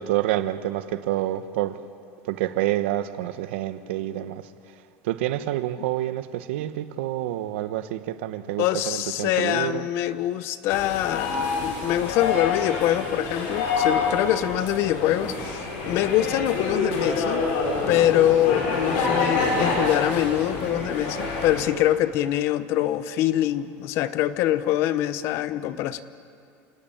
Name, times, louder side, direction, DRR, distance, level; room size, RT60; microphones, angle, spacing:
voice 1, 0.0-1.8 2.2-4.4 5.0-9.9, right 13 dB, 85° right, 1.1 m, -28 dB
voice 2, 8.6-17.5 17.9-26.0, left 13 dB, 40° left, 0.8 m, -24 dB
sound 1, 10.7-21.6, left 4 dB, 65° left, 6.6 m, -27 dB
28.5 x 18.5 x 8.7 m
cardioid pair, 175°, 6 cm